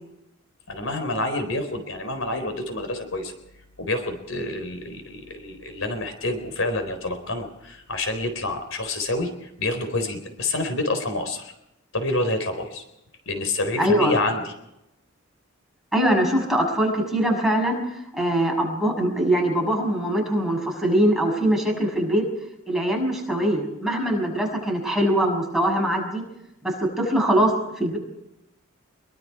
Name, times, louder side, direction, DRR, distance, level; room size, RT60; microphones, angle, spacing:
voice 1, 0.7-3.3 3.8-11.5 11.9-12.8 13.3-14.5, left 2 dB, 75° left, 7 dB, 4.1 m, -28 dB
voice 2, 13.8-14.1 15.9-22.2 22.7-26.2 26.6-28.0, right 1 dB, ahead, -1 dB, 6.6 m, -22 dB
24.5 x 23.5 x 4.8 m, 0.86 s
head